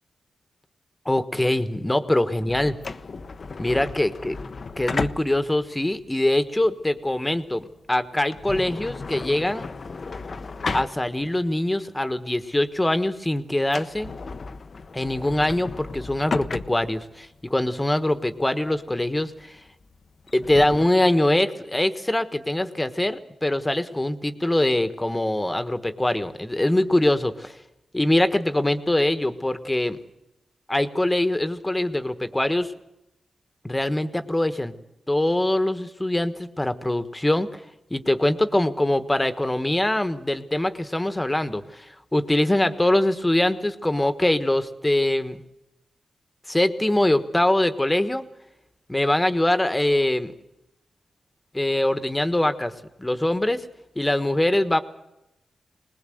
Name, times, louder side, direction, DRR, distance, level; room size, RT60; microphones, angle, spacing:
voice 1, 1.0-2.7 3.6-4.4 4.8-9.6 10.7-14.1 14.9-19.6 20.3-27.6 27.9-30.0 30.7-32.7 33.6-34.7 35.1-37.6 37.9-45.4 46.5-48.2 48.9-50.3 51.5-52.7 53.0-53.7 53.9-54.8, left 1 dB, 15° left, 10 dB, 1.4 m, -23 dB
sound 1, 2.5-11.5 11.9-12.0 12.6-12.8 13.1-13.2 13.6-20.9, left 4 dB, 50° left, 0.8 m, -34 dB
21.5 x 19.5 x 7.9 m, 0.88 s
cardioid pair, 60°, 0 cm